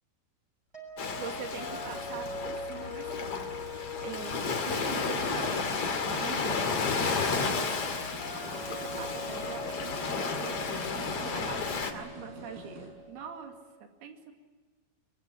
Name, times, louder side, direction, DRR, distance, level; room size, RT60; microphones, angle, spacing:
sound 1, 0.7-13.6, left 2 dB, 10° right, 7.3 m, -43 dB
Ocean, 1.0-11.9, left 5 dB, 45° left, 2.9 m, -32 dB
voice 1, 1.2-5.7 6.0-7.8 8.7-13.6 13.8-14.3, right 7 dB, 85° right, 4 dB, 4.4 m, -44 dB
sound 2, 4.9-12.9, right 1 dB, 70° right, 7.6 m, -48 dB
24.0 x 23.0 x 9.9 m, 1.3 s
omnidirectional pair, 4.4 m